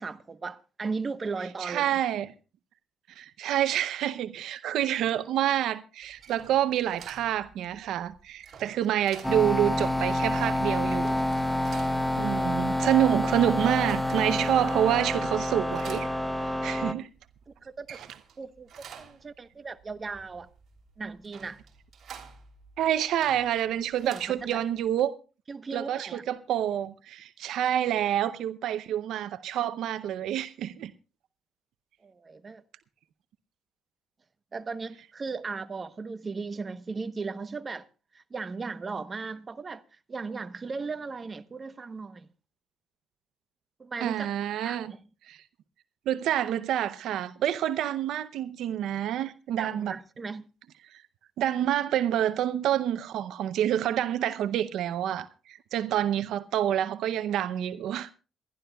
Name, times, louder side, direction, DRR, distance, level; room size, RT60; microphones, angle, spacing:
voice 1, 0.0-1.9 17.6-18.0 18.4-20.5 21.0-21.6 24.0-24.6 25.5-26.2 32.0-32.6 34.5-37.9 38.1-42.3 43.8-44.3 44.6-45.0 49.6-50.5, right 4 dB, 35° right, 0.9 m, -37 dB
voice 2, 1.6-2.3 3.1-11.2 12.1-16.1 16.4-17.1 22.8-25.1 25.7-30.9 44.0-44.9 45.3-45.4 46.1-50.0 50.9-51.0 51.4-58.1, right 11 dB, 80° right, 0.6 m, -28 dB
sound 1, 6.0-24.9, right 7 dB, 60° right, 3.1 m, -51 dB
sound 2, 9.2-16.9, left 1 dB, 5° left, 0.9 m, -28 dB
27.5 x 11.5 x 2.3 m
cardioid pair, 90°, 0 cm